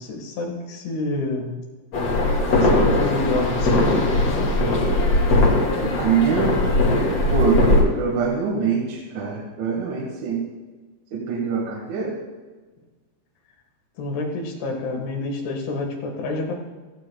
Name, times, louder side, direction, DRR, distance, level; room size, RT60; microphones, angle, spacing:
voice 1, 0.0-1.6 2.6-4.6 14.0-16.5, left 2 dB, 80° left, 1 dB, 4.0 m, -28 dB
sound 1, 1.9-7.8, left 2 dB, 45° left, 2.3 m, -19 dB
voice 2, 5.8-6.7 7.3-7.7 7.9-10.4 11.1-12.1, right 6 dB, 80° right, -3 dB, 4.2 m, -24 dB
17.0 x 14.5 x 2.3 m, 1.3 s
omnidirectional pair, 5.4 m